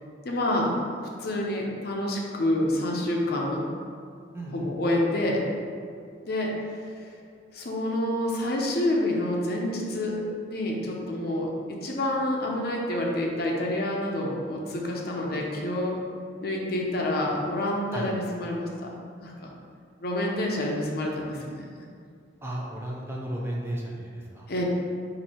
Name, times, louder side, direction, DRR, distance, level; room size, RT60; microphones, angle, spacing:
voice 1, 0.2-0.7 1.2-3.6 4.5-5.4 6.2-7.1 7.5-10.2 10.5-16.0 16.4-18.9 19.2-19.5 20.0-21.6 24.5-24.6, left 1 dB, 55° left, -1 dB, 0.6 m, -28 dB
voice 2, 4.3-4.7 17.9-18.1 22.4-24.5, right 1 dB, 15° right, -3 dB, 0.5 m, -34 dB
4.3 x 2.7 x 4.3 m, 2.3 s
head